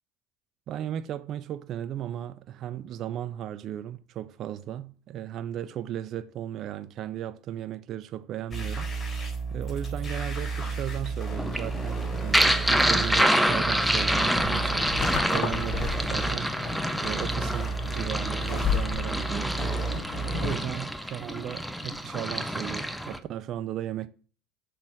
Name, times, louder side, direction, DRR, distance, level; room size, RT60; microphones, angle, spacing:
voice 1, 0.7-8.9 9.5-16.6 17.0-19.6 20.2-24.1, right 11 dB, 50° right, 0.4 m, -36 dB
sound 1, 8.5-13.2 13.5-16.4 16.6-16.7 17.0-20.5, right 4 dB, 30° left, 3.5 m, -32 dB
sound 2, 11.4-23.2, equal, ahead, 0.6 m, -27 dB
sound 3, 14.4-20.7, left 8 dB, 55° left, 0.8 m, -35 dB
6.2 x 3.4 x 5.9 m
hypercardioid pair, 75°, 0 cm